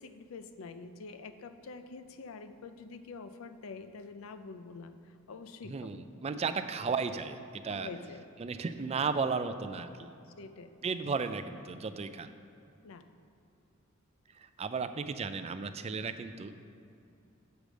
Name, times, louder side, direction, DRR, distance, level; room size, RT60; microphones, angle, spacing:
voice 1, 0.0-6.0 6.3-6.4 7.7-8.2 10.4-10.7 12.8-13.1, left 4 dB, 80° left, 10 dB, 0.5 m, -46 dB
voice 2, 5.6-7.9 8.4-10.1 10.8-12.3 14.3-16.7, right 5 dB, 30° right, 10 dB, 0.4 m, -34 dB
8.0 x 5.1 x 6.2 m, 2.6 s
head